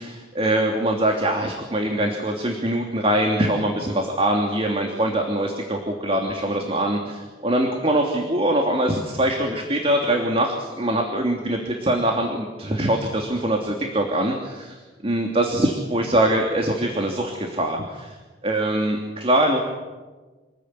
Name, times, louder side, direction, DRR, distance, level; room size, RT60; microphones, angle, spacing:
voice 1, 0.0-14.8 15.0-18.1 18.4-19.6, right 1 dB, 30° right, 2 dB, 3.0 m, -23 dB
28.5 x 21.0 x 9.9 m, 1.3 s
head